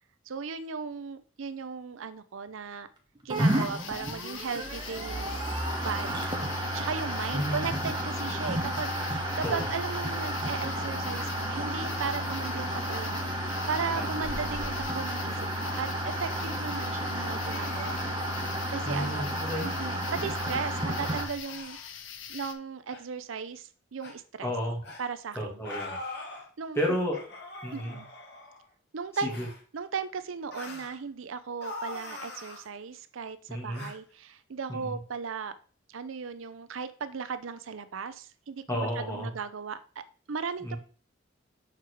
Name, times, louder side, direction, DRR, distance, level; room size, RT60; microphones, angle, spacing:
voice 1, 0.3-2.9 3.2-5.4 5.8-6.3 6.7-18.0 18.7-19.3 19.6-21.8 22.3-24.5 25.0-25.5 26.6-26.8 27.7-28.1 28.9-29.4 29.7-35.5 35.9-40.8, right 5 dB, 80° right, 13 dB, 0.6 m, -36 dB
sound 1, 3.3-22.5, left 8 dB, 75° left, 0.8 m, -43 dB
sound 2, 3.3-21.3, right 1 dB, 20° right, 1.1 m, -32 dB
voice 2, 7.3-7.7 9.4-9.7 13.9-14.1 18.9-19.7 24.4-24.8 25.4-26.0 26.7-27.3 27.6-28.0 29.2-29.5 33.5-33.9 34.7-35.0 38.7-39.3 40.6-40.8, equal, 15° left, -1 dB, 2.1 m, -32 dB
sound 3, 17.5-18.1 18.9-19.3 19.9-20.0 20.3-20.5 21.4-21.9 22.9-23.0 24.0-24.1 24.8-25.0 25.6-26.5 27.1-28.6 29.3-29.6 30.5-30.9 31.6-32.7 33.7-33.9, left 2 dB, 55° left, 1.6 m, -42 dB
6.6 x 4.7 x 4.6 m, 0.39 s
head